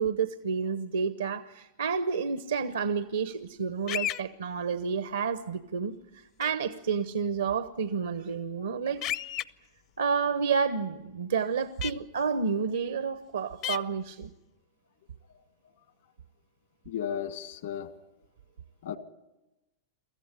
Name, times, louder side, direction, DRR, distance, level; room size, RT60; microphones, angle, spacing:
voice 1, 0.0-5.9 6.4-9.0 10.0-14.3, right 6 dB, 85° right, 12 dB, 1.0 m, -30 dB
sound 1, 3.9-4.2 6.4-6.5 9.0-9.4 11.8-11.9 13.6-13.8, left 12 dB, 45° left, 0.7 m, -31 dB
voice 2, 16.9-17.9 18.8-19.0, left 9 dB, 70° left, 10 dB, 1.8 m, -34 dB
23.5 x 14.5 x 9.9 m, 1.0 s
hypercardioid pair, 105°, 0 cm